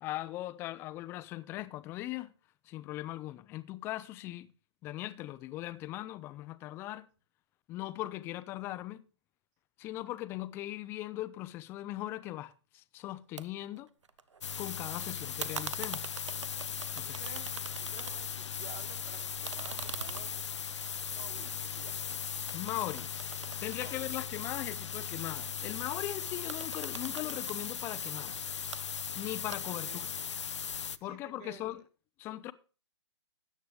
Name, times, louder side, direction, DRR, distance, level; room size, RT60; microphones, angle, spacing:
voice 1, 0.0-2.3 2.7-4.5 4.8-7.1 7.7-9.1 9.8-13.9 14.6-16.1 16.9-17.2 22.5-23.1 23.6-28.4 29.1-30.0 31.0-31.8 32.2-32.5, left 15 dB, 15° left, 0.5 m, -39 dB
sound 1, 13.4-13.5 13.8-14.6 15.4-18.5 18.8-22.1 22.5-24.7 26.3-27.6 28.5-28.8 29.5-30.0, right 6 dB, 80° right, 0.9 m, -44 dB
sound 2, 14.4-31.0, left 7 dB, 75° left, 0.7 m, -38 dB
voice 2, 17.2-17.5 17.8-20.7 21.0-22.2 23.8-24.2 29.7-30.1 31.0-31.7, right 10 dB, 25° right, 1.5 m, -53 dB
14.0 x 9.3 x 3.4 m
hypercardioid pair, 145°, 15 cm